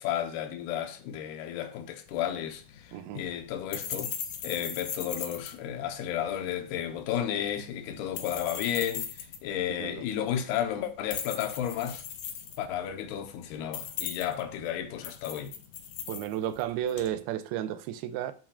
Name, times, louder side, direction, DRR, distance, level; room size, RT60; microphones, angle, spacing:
voice 1, 0.0-4.1 4.4-9.1 9.4-12.0 12.6-15.5, left 10 dB, 90° left, 3.0 m, -33 dB
sound 1, 2.1-17.2, left 8 dB, 65° left, 1.9 m, -40 dB
voice 2, 2.9-3.3 9.8-10.0 16.1-18.3, right 11 dB, 85° right, 2.5 m, -33 dB
12.0 x 7.2 x 2.4 m
omnidirectional pair, 4.4 m